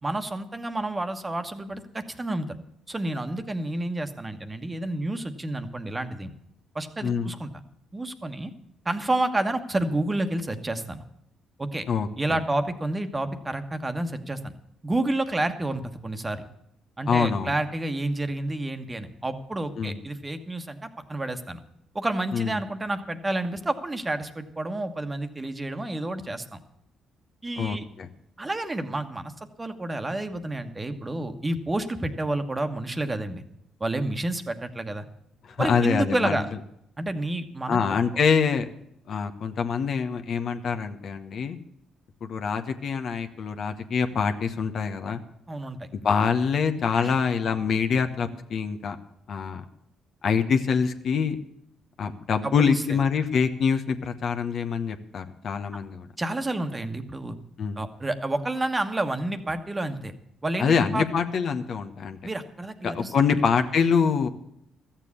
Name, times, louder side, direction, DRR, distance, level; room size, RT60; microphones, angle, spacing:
voice 1, 0.0-2.5 2.9-6.3 6.7-7.5 7.9-8.5 8.8-11.0 11.6-11.9 12.2-14.5 14.8-16.4 17.0-21.6 21.9-26.6 27.4-27.8 28.4-29.3 29.6-33.4 33.8-35.0 35.6-36.5 37.0-37.8 45.5-45.9 47.0-47.2 52.4-52.7 56.2-57.4 57.8-60.1 60.4-61.1 62.2-63.1, right 2 dB, 20° right, 8 dB, 1.3 m, -29 dB
voice 2, 7.0-7.3 11.9-12.4 17.1-17.5 19.8-20.0 22.3-22.6 27.6-28.1 35.4-36.4 37.7-38.7 39.1-41.6 42.2-45.2 45.9-49.0 49.3-49.6 50.2-51.4 52.0-56.1 57.6-57.8 60.6-62.2 62.8-64.3, left 6 dB, 60° left, 7 dB, 1.0 m, -25 dB
13.5 x 7.4 x 8.5 m, 0.76 s
supercardioid pair, 65°, 0 cm